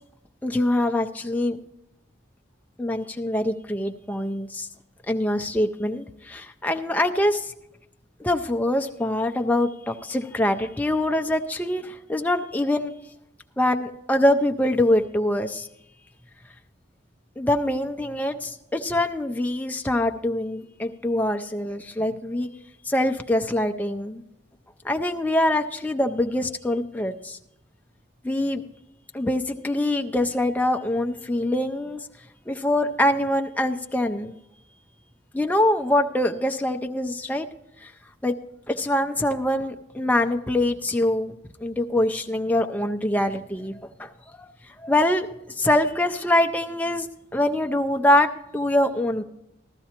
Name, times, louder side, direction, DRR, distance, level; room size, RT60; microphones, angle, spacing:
voice 1, 0.4-1.6 2.8-4.7 5.1-7.5 8.2-12.9 13.6-15.7 17.4-22.5 22.9-24.2 24.8-27.4 28.2-28.6 29.1-32.0 32.5-34.3 35.3-37.5 37.8-37.9 38.2-38.3 38.7-41.3 41.6-44.1 44.4-44.5 44.8-45.3 45.6-48.3 48.5-49.2, left 1 dB, 10° left, 5 dB, 0.4 m, -24 dB
15.0 x 12.5 x 2.9 m, 0.85 s
head